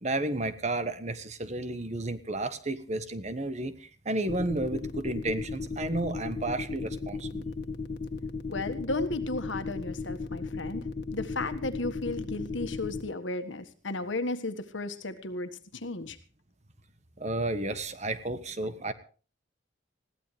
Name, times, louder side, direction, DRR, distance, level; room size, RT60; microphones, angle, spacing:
voice 1, 0.0-7.5 17.2-18.9, right 2 dB, 35° right, 11 dB, 1.3 m, -32 dB
sound 1, 4.3-13.0, left 4 dB, 55° left, 1.7 m, -35 dB
voice 2, 8.5-10.8 11.1-16.2, left 2 dB, 75° left, 10 dB, 1.6 m, -34 dB
21.0 x 16.0 x 3.4 m, 0.38 s
head